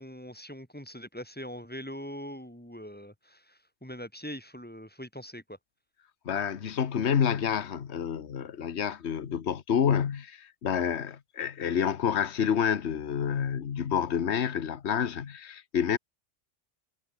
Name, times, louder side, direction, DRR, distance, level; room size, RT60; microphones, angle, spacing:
voice 1, 0.0-5.6, equal, 10° left, 4.2 m, -42 dB
voice 2, 6.2-16.0, left 8 dB, 70° left, 1.4 m, -28 dB
omnidirectional pair, 1.2 m